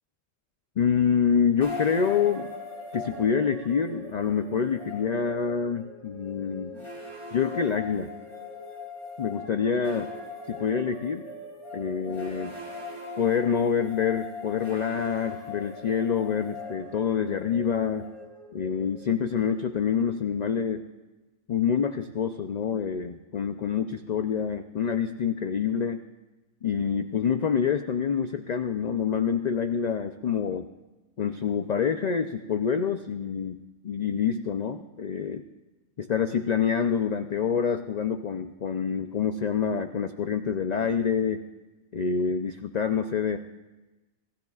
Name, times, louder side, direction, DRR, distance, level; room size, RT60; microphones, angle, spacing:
voice 1, 0.8-2.6 2.9-6.7 7.3-8.1 9.2-10.1 10.5-11.2 11.7-12.5 13.2-18.1 18.5-20.9 21.5-26.0 26.6-30.7 31.2-35.4 36.0-41.4 41.9-43.4, left 7 dB, 60° left, 7 dB, 0.4 m, -27 dB
sound 1, 1.6-20.7, left 3 dB, 20° left, 3.0 m, -40 dB
26.5 x 16.5 x 2.4 m, 1.1 s
omnidirectional pair, 1.4 m